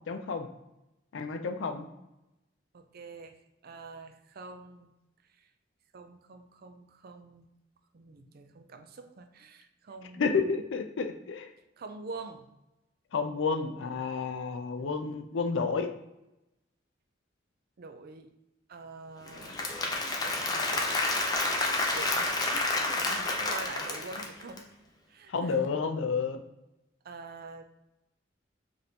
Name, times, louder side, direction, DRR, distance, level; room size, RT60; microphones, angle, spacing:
voice 1, 0.1-0.5 1.1-1.9 10.1-11.5 13.1-15.9 25.3-26.4, left 5 dB, 80° left, 7 dB, 0.4 m, -30 dB
voice 2, 2.7-3.4 3.6-4.9 5.4-5.5 5.9-7.5 7.9-10.5 11.8-12.5 14.8-15.5 17.8-18.3 18.7-19.6 20.2-21.1 21.9-24.6 25.1-25.6 27.0-27.6, right 3 dB, 55° right, 7 dB, 0.4 m, -46 dB
Applause / Crowd, 19.3-24.6, left 2 dB, 20° left, 0.5 m, -29 dB
5.1 x 2.6 x 2.8 m, 0.93 s
head